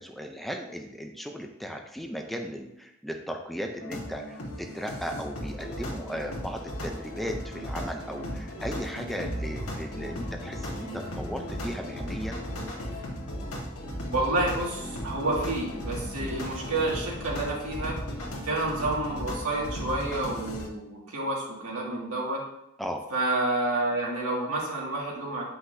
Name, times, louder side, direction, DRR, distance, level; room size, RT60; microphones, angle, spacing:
voice 1, 0.0-12.4 16.2-16.4 22.8-23.0, equal, ahead, 3 dB, 0.5 m, -36 dB
sound 1, 3.8-20.7, equal, 85° left, 1.5 m, -36 dB
sound 2, 9.3-12.4, right 1 dB, 50° right, 0.9 m, -41 dB
voice 2, 14.1-18.0 18.4-22.4 23.1-25.4, right 2 dB, 85° right, -4 dB, 2.1 m, -29 dB
7.8 x 5.6 x 2.7 m, 0.85 s
head